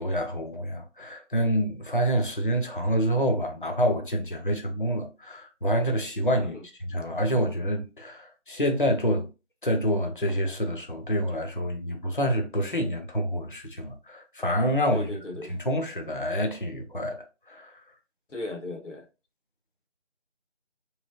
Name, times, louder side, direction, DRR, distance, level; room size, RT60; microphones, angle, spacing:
voice 1, 0.0-6.6 6.9-9.3 9.6-15.1 15.5-17.2 17.5-17.7, equal, 45° left, 0.6 m, -27 dB
voice 2, 14.9-15.6 18.3-19.1, left 2 dB, 90° left, 1.0 m, -36 dB
3.2 x 3.2 x 2.3 m
figure-of-eight pair, 175°, 36 cm